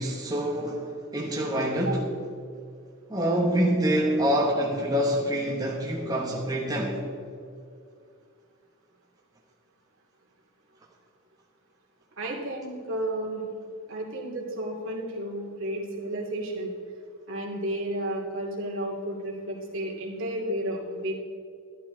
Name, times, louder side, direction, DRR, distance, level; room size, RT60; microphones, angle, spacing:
voice 1, 0.0-2.0 3.1-7.0, equal, 15° right, -3 dB, 1.2 m, -26 dB
voice 2, 12.2-13.4 13.9-16.7 17.3-21.1, right 1 dB, 65° right, -2 dB, 2.5 m, -32 dB
13.0 x 12.0 x 3.9 m, 2.4 s
head